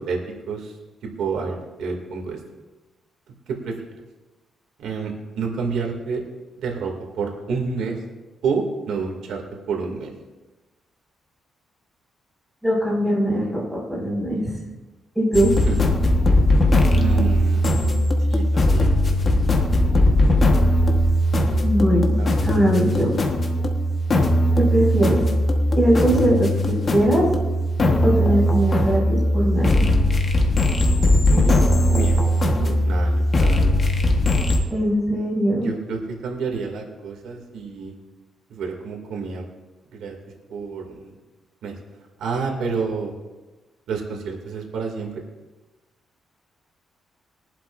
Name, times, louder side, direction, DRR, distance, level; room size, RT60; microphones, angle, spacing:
voice 1, 0.5-0.8 1.2-2.4 3.5-3.7 4.8-6.2 6.6-8.0 8.4-10.1 15.4-15.7 16.9-17.6 18.3-19.5 22.2-22.5 31.3-33.7 35.6-37.9 38.5-39.4 39.9-40.1 40.5-41.2 41.6-41.7 42.2-43.1 43.9-45.2, right 5 dB, 90° right, 1 dB, 2.3 m, -29 dB
voice 2, 12.6-14.5 15.2-15.5 21.6-22.2 22.5-23.2 24.6-25.2 25.7-27.3 28.0-29.9 34.7-35.7, equal, ahead, -7 dB, 5.2 m, -21 dB
sound 1, 15.3-34.6, left 1 dB, 30° left, 1.2 m, -19 dB
22.0 x 11.5 x 2.6 m, 1.2 s
cardioid pair, 175°, 0 cm